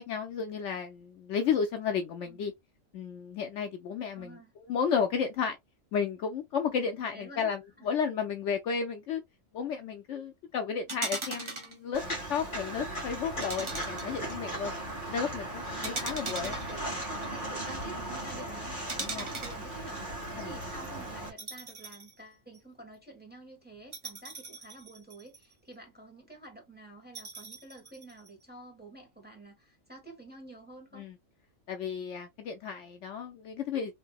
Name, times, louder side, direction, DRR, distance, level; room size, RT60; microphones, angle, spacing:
voice 1, 0.0-2.5 2.9-4.4 4.7-5.6 5.9-9.2 9.5-12.0 12.3-14.8 15.1-16.5 19.0-19.2 20.3-20.6 30.9-31.1 31.7-33.9, left 6 dB, 65° left, 0.8 m, -33 dB
voice 2, 4.1-4.5 7.1-7.5 7.8-7.9 16.1-31.1, right 2 dB, 5° right, 1.2 m, -49 dB
sound 1, 10.9-11.8 13.4-14.3 15.8-17.3 18.9-19.6 21.4-22.1 22.5-22.6 23.9-25.5 27.1-28.3, right 3 dB, 30° right, 0.6 m, -39 dB
Walk footsteps, 11.9-21.3, right 1 dB, 35° left, 1.7 m, -37 dB
3.9 x 2.7 x 2.2 m
omnidirectional pair, 1.4 m